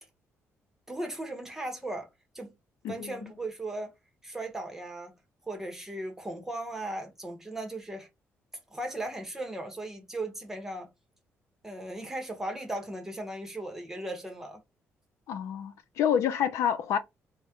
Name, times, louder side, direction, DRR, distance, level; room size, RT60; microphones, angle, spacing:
voice 1, 0.9-2.1 2.3-2.5 2.9-3.9 4.2-5.1 5.4-8.1 8.7-10.9 11.6-14.6, right 1 dB, 10° right, 1.0 m, -37 dB
voice 2, 2.8-3.3 15.3-17.0, left 8 dB, 85° left, 0.6 m, -28 dB
4.1 x 2.1 x 3.5 m
cardioid pair, 150°, 5 cm